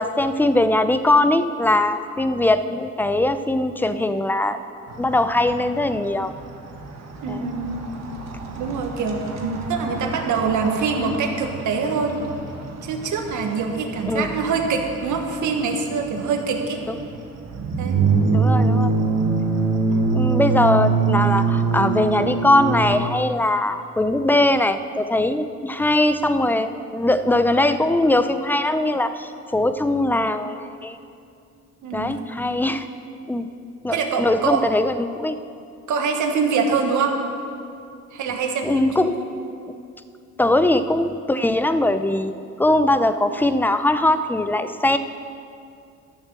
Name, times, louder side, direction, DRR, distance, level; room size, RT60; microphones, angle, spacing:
voice 1, 0.0-4.6 5.0-6.3 7.3-7.5 14.1-14.3 18.3-18.9 20.1-30.5 30.8-31.0 31.9-32.9 33.3-33.5 33.8-35.3 38.6-39.2 40.4-45.0, left 1 dB, 5° left, 10 dB, 0.5 m, -21 dB
sound 1, 4.9-23.0, right 4 dB, 60° right, 1.5 m, -25 dB
voice 2, 7.2-7.8 8.6-12.2 12.8-16.8 17.8-18.0 31.8-32.2 33.9-34.6 35.9-37.2 38.1-39.2, right 5 dB, 75° right, 4 dB, 1.4 m, -24 dB
12.0 x 7.2 x 6.8 m, 2.5 s
cardioid pair, 90°, 30 cm